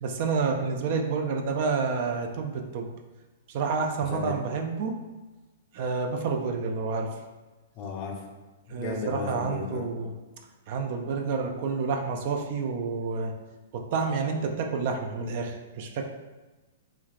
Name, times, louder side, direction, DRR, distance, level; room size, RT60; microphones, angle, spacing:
voice 1, 0.0-2.9 3.5-5.0 5.7-7.1 8.7-10.1 10.7-13.3 13.7-16.1, right 4 dB, 50° right, 3 dB, 0.3 m, -29 dB
voice 2, 4.0-4.4 7.8-8.2 8.8-9.9, left 4 dB, 35° left, 2 dB, 0.4 m, -34 dB
3.1 x 2.3 x 2.4 m, 1.2 s
hypercardioid pair, 150°, 0 cm